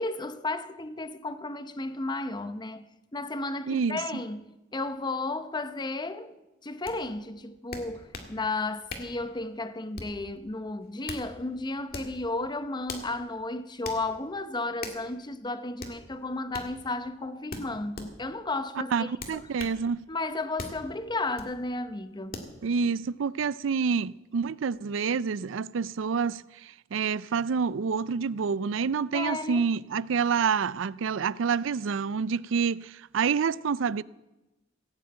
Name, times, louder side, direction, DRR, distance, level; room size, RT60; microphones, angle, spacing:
voice 1, 0.0-6.3 6.6-19.5 20.1-22.5 29.1-29.7, left 2 dB, 20° left, 0.7 m, -33 dB
voice 2, 3.7-4.0 18.9-20.0 22.6-34.0, right 5 dB, 70° right, 0.4 m, -28 dB
sound 1, 6.9-7.0 7.7-8.3 8.9-9.2 9.9-10.2 10.8-11.3 11.9-12.2 12.9-13.1 13.8-14.0 14.8-15.0 15.8-16.0 16.5-16.7 17.5-18.1 19.2-19.8 20.6-20.8 21.4-21.5 22.3-22.5, left 3 dB, 50° left, 2.1 m, -39 dB
17.0 x 8.8 x 8.8 m
head